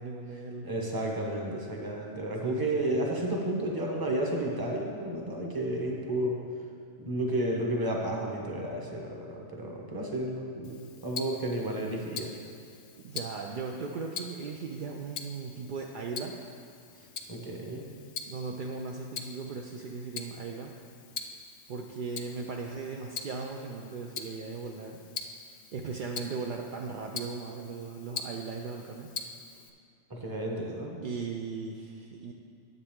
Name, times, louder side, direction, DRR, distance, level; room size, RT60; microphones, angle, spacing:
voice 1, 0.0-0.7 2.4-3.0 13.0-16.5 18.2-20.7 21.7-25.0 25.7-29.1 31.0-32.3, right 4 dB, 65° right, 1 dB, 0.5 m, -38 dB
voice 2, 0.6-6.4 7.0-10.8 11.0-12.3 17.0-17.8 30.1-31.0, right 1 dB, 20° right, -1 dB, 0.9 m, -32 dB
Tick-tock, 10.6-29.7, left 5 dB, 55° left, 0.6 m, -44 dB
9.8 x 8.0 x 3.6 m, 2.3 s
omnidirectional pair, 1.4 m